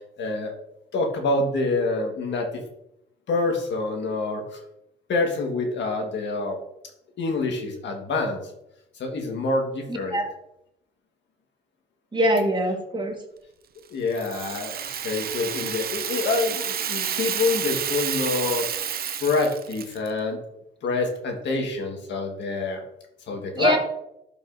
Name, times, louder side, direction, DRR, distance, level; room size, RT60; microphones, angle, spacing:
voice 1, 0.2-0.5 0.9-2.5 3.3-4.6 5.1-6.6 7.2-8.4 8.9-10.2 13.9-14.8 15.0-18.7 19.2-20.4 20.8-22.8 23.3-23.8, left 3 dB, 65° left, 2 dB, 1.6 m, -26 dB
voice 2, 9.9-10.3 12.1-13.2 23.5-23.8, right 1 dB, 25° right, 2 dB, 1.6 m, -23 dB
Rattle (instrument), 14.1-20.1, right 9 dB, 50° right, 0.6 m, -30 dB
11.5 x 5.4 x 2.7 m, 0.83 s
cardioid pair, 90°, 20 cm